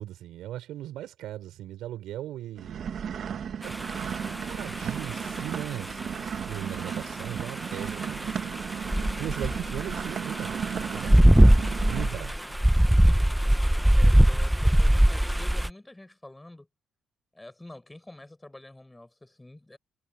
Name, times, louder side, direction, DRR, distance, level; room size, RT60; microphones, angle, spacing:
voice 1, 0.0-2.8 3.6-3.7 4.2-8.6 9.2-11.5 11.8-13.0, right 13 dB, 85° right, 4.7 m, -38 dB
sound 1, 2.6-12.1, right 8 dB, 60° right, 1.6 m, -35 dB
sound 2, 3.6-6.1 6.5-15.7, right 1 dB, 5° right, 1.0 m, -22 dB
voice 2, 13.9-16.7 17.3-19.8, left 1 dB, 10° left, 6.4 m, -47 dB
cardioid pair, 90°, 0 cm